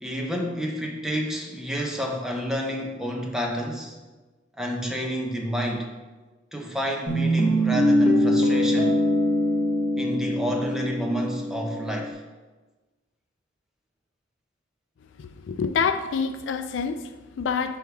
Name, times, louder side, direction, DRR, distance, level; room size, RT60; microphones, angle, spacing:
voice 1, 0.0-4.0 4.6-5.9 6.5-9.0 10.0-12.2, equal, 5° right, 0 dB, 0.7 m, -29 dB
Guitar, 7.1-12.1, equal, 35° left, 0.8 m, -23 dB
voice 2, 15.2-17.8, left 5 dB, 70° left, 10 dB, 0.4 m, -27 dB
6.2 x 3.5 x 4.6 m, 1.2 s
head